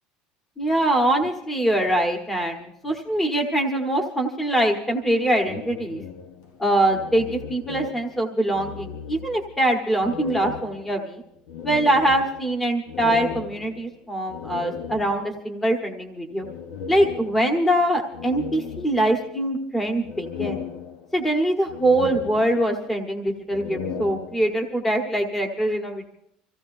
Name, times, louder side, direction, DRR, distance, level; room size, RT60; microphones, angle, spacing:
voice 1, 0.6-6.0 6.6-11.2 11.6-16.5 16.9-20.6 21.1-26.1, right 1 dB, 10° left, 3 dB, 1.3 m, -23 dB
sound 1, 5.4-8.2 8.5-9.6 10.0-15.4 16.4-17.7 18.1-19.4 19.8-21.3 21.7-23.0 23.4-24.7, left 6 dB, 65° left, 1.3 m, -36 dB
26.0 x 16.0 x 2.7 m, 0.75 s
cardioid pair, 175°, 3 cm